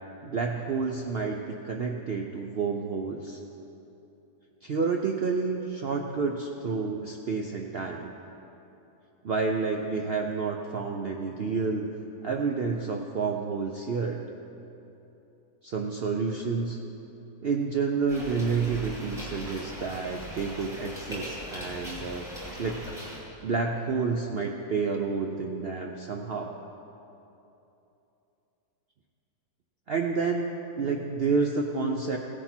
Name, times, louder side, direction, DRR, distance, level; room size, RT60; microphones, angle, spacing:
voice 1, 0.2-3.4 4.6-8.1 9.2-11.9 12.2-14.2 15.6-16.8 17.4-22.3 22.6-22.8 23.4-26.6 29.9-30.5 30.8-32.2, right 4 dB, 70° right, 2 dB, 0.5 m, -29 dB
sound 1, 18.1-23.2, left 1 dB, ahead, 2.4 m, -40 dB
16.0 x 9.9 x 4.4 m, 2.9 s
omnidirectional pair, 1.8 m